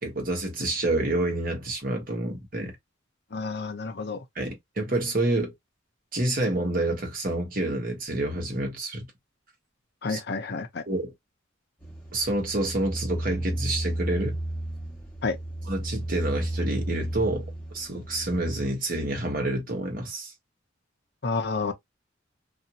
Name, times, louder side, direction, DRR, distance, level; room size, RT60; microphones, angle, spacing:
voice 1, 0.0-2.7 4.3-5.5 6.1-9.1 10.1-10.2 10.9-11.1 12.1-14.4 15.7-17.5 17.7-20.3, right 2 dB, 50° right, 1.1 m, -28 dB
voice 2, 3.3-4.2 10.0-10.8 15.2-15.4 21.2-21.7, left 4 dB, 60° left, 0.7 m, -29 dB
sound 1, 11.8-18.7, right 1 dB, 5° left, 1.2 m, -33 dB
2.6 x 2.4 x 2.8 m
head